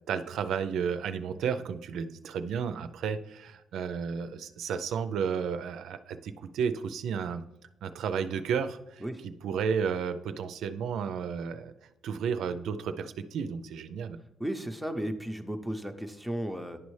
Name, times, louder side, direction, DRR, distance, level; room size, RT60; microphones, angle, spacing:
voice 1, 0.1-7.4 7.8-11.7 12.0-14.2, right 6 dB, 75° right, 10 dB, 0.4 m, -32 dB
voice 2, 14.4-16.8, equal, ahead, 8 dB, 0.6 m, -34 dB
11.0 x 4.1 x 3.2 m, 0.93 s
cardioid pair, 90°, 0 cm